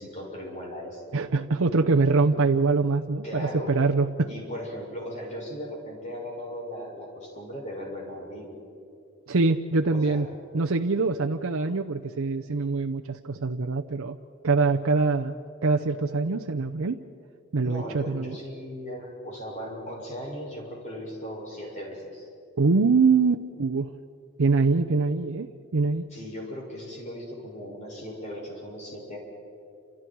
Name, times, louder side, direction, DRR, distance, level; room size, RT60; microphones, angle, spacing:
voice 1, 0.0-1.1 3.2-3.8 4.3-8.6 9.9-10.3 17.6-22.3 26.1-29.2, equal, 35° left, -3 dB, 7.0 m, -37 dB
voice 2, 1.1-4.3 9.3-10.3 10.5-14.2 14.4-15.4 15.6-17.0 17.5-18.4 22.6-23.9 24.4-26.1, right 4 dB, 75° right, 4 dB, 0.7 m, -24 dB
29.5 x 27.5 x 4.7 m, 2.6 s
head